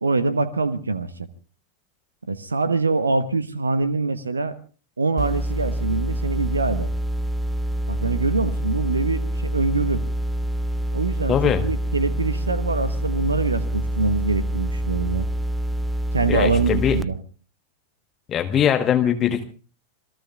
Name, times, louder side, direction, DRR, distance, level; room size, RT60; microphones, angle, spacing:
voice 1, 0.0-1.3 2.3-4.6 5.0-6.9 7.9-10.0 10.9-15.3 16.1-17.2, right 3 dB, 75° right, 14 dB, 0.9 m, -24 dB
sound 1, 5.2-17.0, right 1 dB, 5° right, 0.7 m, -26 dB
voice 2, 11.3-11.6 16.3-17.0 18.3-19.4, left 9 dB, 25° left, 9 dB, 1.2 m, -21 dB
27.0 x 21.5 x 2.4 m, 0.37 s
figure-of-eight pair, 90°, 0 cm